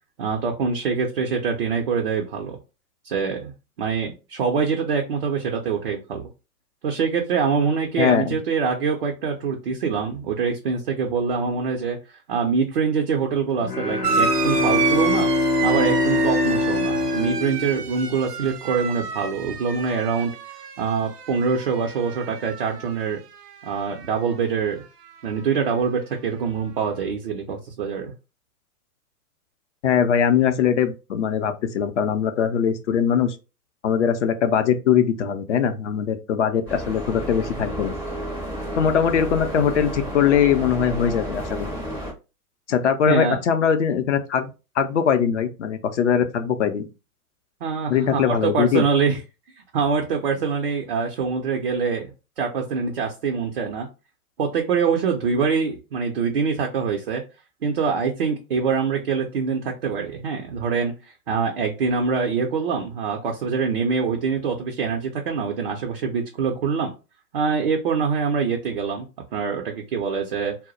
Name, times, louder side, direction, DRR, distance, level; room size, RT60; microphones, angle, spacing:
voice 1, 0.2-2.6 3.0-3.5 3.8-6.3 6.8-12.0 12.3-15.3 15.6-20.3 20.8-23.2 23.6-24.8 25.2-28.1 43.1-43.4 47.6-49.2 49.7-52.1 52.4-53.9 54.4-57.2 57.6-60.9 61.3-66.9 67.3-69.1 69.3-70.6, right 5 dB, 40° right, 0.5 m, -24 dB
voice 2, 8.0-8.4 29.8-33.4 33.8-37.9 38.8-41.7 42.7-44.5 44.8-46.9 47.9-48.8, left 8 dB, 50° left, 0.6 m, -21 dB
Bowed string instrument, 13.6-18.5, left 2 dB, 90° left, 0.8 m, -23 dB
sound 1, 14.0-23.0 23.3-24.1 25.2-25.3, right 6 dB, 90° right, 0.5 m, -29 dB
sound 2, 36.7-42.1, equal, 5° left, 0.6 m, -31 dB
2.2 x 2.0 x 3.7 m
figure-of-eight pair, 115°, 46 cm